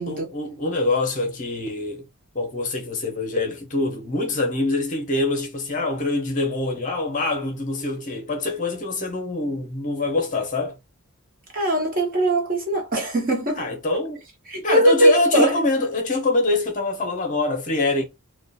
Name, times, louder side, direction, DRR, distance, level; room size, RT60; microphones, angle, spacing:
voice 1, 0.1-2.0 2.3-10.8 13.6-14.2 14.6-18.0, left 2 dB, 35° left, 0.6 m, -24 dB
voice 2, 11.5-13.6 14.5-15.6, right 1 dB, 40° right, 0.8 m, -20 dB
2.4 x 2.2 x 2.5 m
head